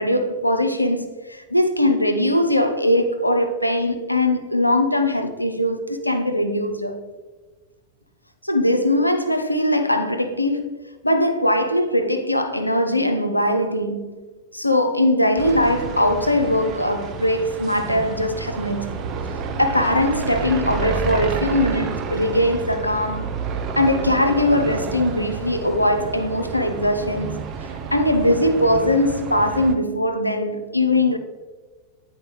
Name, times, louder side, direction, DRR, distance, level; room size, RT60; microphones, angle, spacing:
voice 1, 0.0-7.0 8.4-10.7 11.0-14.2 14.5-19.0 19.6-23.3 23.8-27.6 27.9-31.2, left 1 dB, 85° left, 0.5 m, -21 dB
sound 1, 15.4-29.7, right 5 dB, 35° right, 0.6 m, -30 dB
9.5 x 4.2 x 3.1 m
figure-of-eight pair, 90°, 0 cm